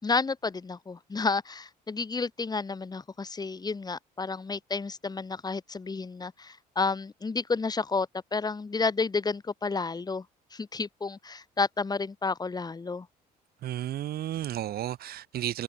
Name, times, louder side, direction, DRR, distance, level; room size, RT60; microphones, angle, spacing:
voice 1, 0.0-10.3 10.5-13.1, left 4 dB, 25° left, 5.8 m, -31 dB
voice 2, 13.6-15.6, right 12 dB, 65° right, 5.6 m, -33 dB
cardioid pair, 110°, 17 cm